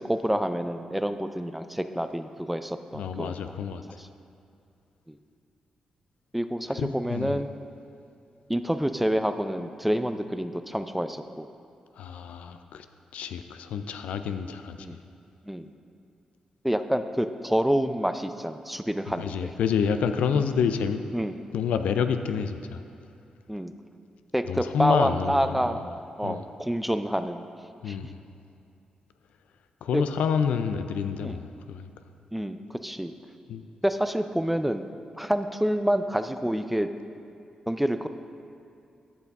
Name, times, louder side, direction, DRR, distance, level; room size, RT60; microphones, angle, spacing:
voice 1, 0.0-3.4 4.0-4.1 5.1-5.2 6.3-7.5 8.5-11.5 14.8-15.0 15.4-15.7 16.6-19.3 20.3-20.4 21.1-21.4 23.5-23.7 24.3-25.8 26.2-27.5 27.9-28.0 29.9-30.0 31.2-31.4 32.3-33.1 33.8-34.8 35.2-36.9 37.7-38.1, equal, 5° right, 9 dB, 0.4 m, -27 dB
voice 2, 2.9-4.0 6.8-7.4 12.0-12.9 13.1-15.0 19.2-21.0 21.5-22.8 24.5-25.9 26.2-26.5 27.8-28.2 29.8-31.4 31.7-31.9 33.5-33.7, left 7 dB, 85° left, 9 dB, 0.4 m, -28 dB
12.0 x 5.8 x 3.6 m, 2.5 s
cardioid pair, 55°, 2 cm